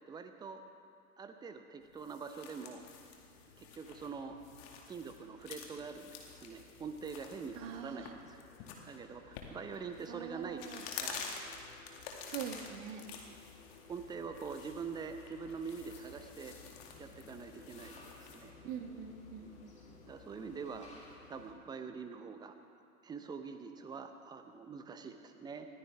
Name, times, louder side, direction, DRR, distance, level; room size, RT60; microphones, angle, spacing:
voice 1, 0.1-0.6 1.2-2.9 3.6-4.4 4.9-8.5 8.9-11.2 13.1-13.4 13.9-16.6 17.0-18.5 19.4-19.6 20.1-20.9 21.3-22.5 23.0-25.7, right 5 dB, 10° right, 7 dB, 0.7 m, -45 dB
sound 1, 1.8-18.5, left 6 dB, 45° left, 2.2 m, -49 dB
sound 2, 2.8-21.5, left 5 dB, 65° left, 2.7 m, -59 dB
voice 2, 7.5-8.1 10.1-10.8 12.3-13.0 18.6-19.7, right 8 dB, 35° right, 6 dB, 1.4 m, -44 dB
sound 3, 15.9-21.2, left 2 dB, 15° left, 2.8 m, -60 dB
20.5 x 15.0 x 3.6 m, 2.4 s
figure-of-eight pair, 110°, 45 cm